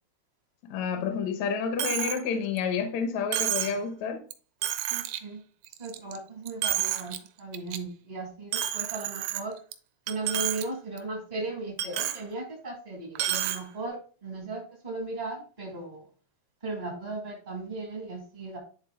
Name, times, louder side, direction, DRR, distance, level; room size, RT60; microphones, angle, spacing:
voice 1, 0.6-4.2, left 6 dB, 70° left, 1.7 m, -29 dB
Coin (dropping), 1.8-2.2 2.6-2.7 3.3-3.8 4.3-4.4 4.6-5.2 5.6-6.2 6.5-7.2 7.5-7.8 8.5-9.7 10.1-10.6 11.0-11.1 11.8-12.2 13.2-13.6, right 12 dB, 80° right, 2.3 m, -30 dB
voice 2, 4.9-5.4 5.8-9.6 10.1-16.1 16.6-18.6, right 3 dB, 40° right, 0.6 m, -37 dB
10.5 x 3.7 x 3.6 m
omnidirectional pair, 4.3 m